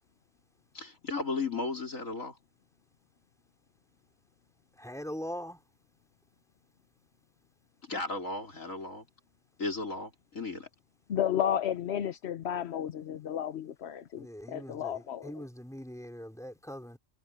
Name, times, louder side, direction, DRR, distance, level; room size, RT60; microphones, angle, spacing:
voice 1, 0.7-2.4 7.8-9.0 9.6-10.7, left 3 dB, 75° left, 4.5 m, -35 dB
voice 2, 4.8-5.6 14.2-17.0, equal, ahead, 5.1 m, -41 dB
voice 3, 11.1-15.5, left 9 dB, 55° left, 1.0 m, -32 dB
omnidirectional pair, 1.4 m